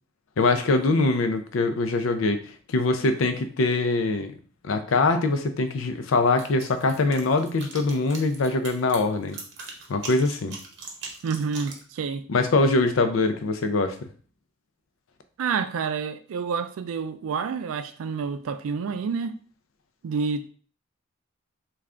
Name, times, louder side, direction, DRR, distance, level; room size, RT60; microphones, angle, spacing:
voice 1, 0.4-4.3 4.6-9.4 9.9-10.6 12.3-13.9, left 3 dB, 75° left, 0.5 m, -23 dB
sound 1, 6.4-11.8, right 4 dB, 60° right, 0.8 m, -40 dB
voice 2, 11.2-12.2 15.4-19.3 20.0-20.5, right 5 dB, 85° right, 0.3 m, -28 dB
3.6 x 2.4 x 3.2 m
head